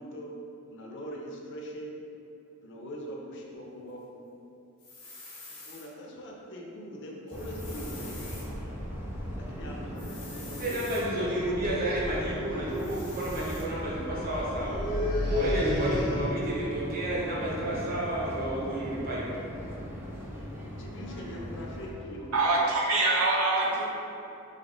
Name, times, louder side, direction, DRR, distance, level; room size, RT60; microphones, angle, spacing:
voice 1, 0.0-2.2 2.6-4.1 5.6-8.4 9.4-11.3 11.7-11.8 12.2-12.6 20.8-22.5, equal, 55° left, -1 dB, 0.5 m, -42 dB
sound 1, 4.8-5.9 7.3-8.5 10.0-11.0 12.7-13.7, left 2 dB, 80° left, 1.3 m, -46 dB
sound 2, 7.3-21.9, equal, 10° right, 0.5 m, -39 dB
voice 2, 10.6-14.8 15.3-19.3, right 1 dB, 40° right, -5 dB, 0.9 m, -31 dB
sound 3, 12.2-12.3 12.5-12.8 14.5-16.6, left 1 dB, 20° left, 1.2 m, -30 dB
voice 3, 22.3-23.9, right 2 dB, 70° right, -3 dB, 0.7 m, -24 dB
5.4 x 2.5 x 3.2 m, 2.9 s
head